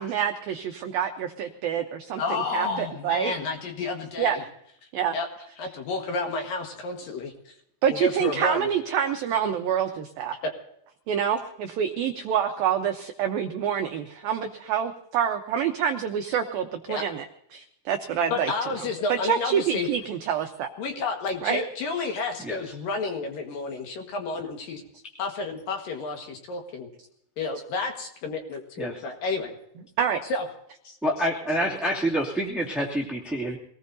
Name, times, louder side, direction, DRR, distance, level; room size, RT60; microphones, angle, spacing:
voice 1, 0.0-2.2 2.5-3.3 4.2-4.4 4.9-5.2 7.8-10.4 11.1-17.3 17.5-18.5 18.8-20.7 21.4-21.6 30.0-30.2, right 8 dB, 85° right, 5 dB, 2.0 m, -27 dB
voice 2, 2.2-4.4 5.1-5.3 5.6-7.5 7.9-8.7 10.4-10.5 16.9-17.0 18.3-19.9 20.8-24.8 25.2-26.9 27.4-29.5 30.3-30.4 30.8-31.0, left 3 dB, 60° left, 3 dB, 2.8 m, -30 dB
voice 3, 31.0-33.6, equal, ahead, -3 dB, 0.5 m, -27 dB
25.0 x 18.5 x 2.7 m, 0.74 s
omnidirectional pair, 5.5 m